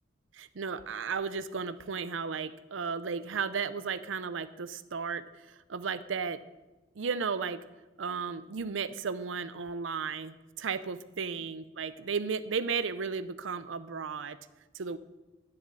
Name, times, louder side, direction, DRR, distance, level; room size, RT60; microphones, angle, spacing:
voice 1, 0.3-6.4 7.0-7.7 8.0-14.4 14.7-15.0, right 5 dB, 85° right, 14 dB, 0.6 m, -34 dB
11.0 x 7.3 x 9.8 m, 1.1 s
head